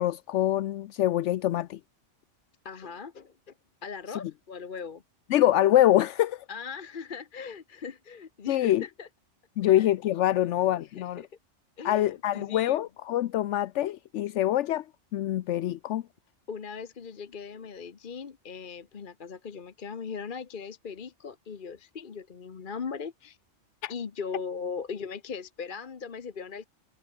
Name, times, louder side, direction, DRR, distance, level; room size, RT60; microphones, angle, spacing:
voice 1, 0.0-1.8 5.3-6.4 8.5-8.8 9.6-11.2 11.8-14.8 15.1-16.0 23.8-23.9, left 13 dB, 80° left, 0.9 m, -25 dB
voice 2, 2.6-3.5 3.8-5.0 6.5-9.1 9.6-9.9 10.3-10.5 11.0-11.3 11.8-12.8 16.5-23.4 23.9-26.7, left 6 dB, 45° left, 1.1 m, -39 dB
omnidirectional pair, 1.2 m